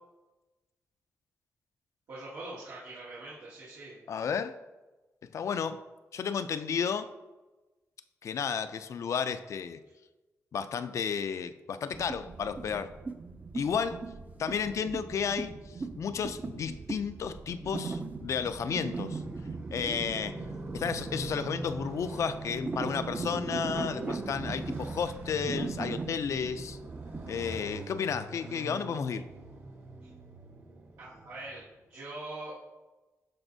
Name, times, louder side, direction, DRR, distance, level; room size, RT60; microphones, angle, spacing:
voice 1, 2.1-4.0 30.0-30.1 31.0-31.6 31.9-32.5, right 2 dB, 90° right, -9 dB, 1.9 m, -43 dB
voice 2, 4.1-4.6 5.3-5.8 6.1-7.1 8.2-9.8 10.5-12.9 13.5-14.0 14.4-19.2 19.7-20.4 20.7-26.8 27.3-29.3, left 6 dB, 60° left, 11 dB, 0.4 m, -32 dB
sound 1, 11.9-27.4, right 4 dB, 30° right, 0.4 m, -40 dB
Motorcycle, 13.5-31.7, right 2 dB, 45° right, 0.9 m, -43 dB
12.0 x 4.2 x 2.7 m, 1.1 s
cardioid pair, 115°, 6 cm